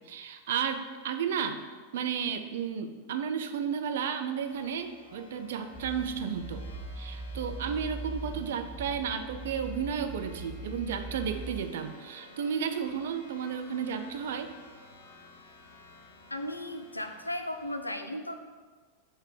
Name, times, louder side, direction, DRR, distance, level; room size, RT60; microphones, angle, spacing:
voice 1, 0.1-6.6 7.0-14.5, right 7 dB, 60° right, 8 dB, 0.3 m, -33 dB
sound 1, 4.5-17.7, left 2 dB, 60° left, 0.7 m, -53 dB
sound 2, 5.7-11.6, right 2 dB, 10° left, 0.6 m, -41 dB
voice 2, 16.3-18.3, left 1 dB, 85° left, 6 dB, 0.3 m, -36 dB
3.8 x 2.7 x 4.6 m, 1.4 s
figure-of-eight pair, 90°, 0 cm